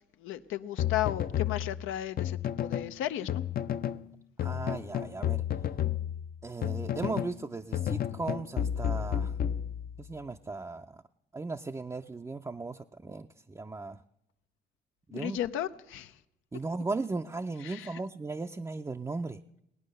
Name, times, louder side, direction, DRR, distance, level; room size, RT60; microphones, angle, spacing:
voice 1, 0.2-3.4 15.1-16.1 17.6-17.9, left 12 dB, 85° left, 10 dB, 0.6 m, -34 dB
sound 1, 0.8-2.9 3.3-4.0 4.4-7.4 7.7-10.1, left 10 dB, 50° left, 0.5 m, -32 dB
voice 2, 4.4-5.4 6.4-9.3 10.0-11.0 11.3-14.0 15.1-15.4 16.5-19.4, right 3 dB, 15° right, 5 dB, 0.4 m, -37 dB
19.0 x 9.2 x 6.6 m, 0.82 s
cardioid pair, 90°, 20 cm